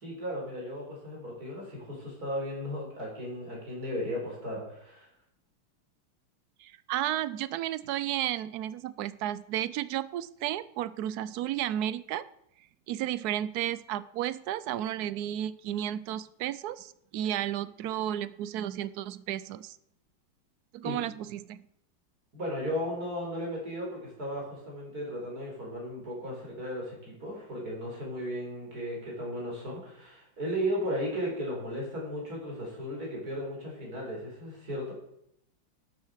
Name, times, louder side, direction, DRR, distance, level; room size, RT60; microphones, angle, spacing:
voice 1, 0.0-5.1 20.8-21.0 22.3-34.9, equal, 45° right, -2 dB, 5.2 m, -35 dB
voice 2, 6.6-12.2 12.9-19.8 20.7-21.6, right 12 dB, 75° right, 16 dB, 0.9 m, -33 dB
12.5 x 8.2 x 6.4 m, 0.76 s
omnidirectional pair, 2.2 m